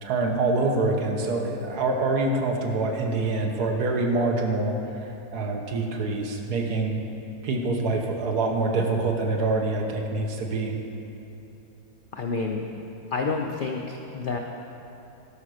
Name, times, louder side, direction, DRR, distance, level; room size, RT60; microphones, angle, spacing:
voice 1, 0.0-7.1 7.4-10.8, right 3 dB, 80° right, 2 dB, 1.5 m, -25 dB
voice 2, 12.1-12.6 13.1-14.4, left 4 dB, 75° left, 1 dB, 0.4 m, -29 dB
11.5 x 5.7 x 6.4 m, 3.0 s
omnidirectional pair, 1.7 m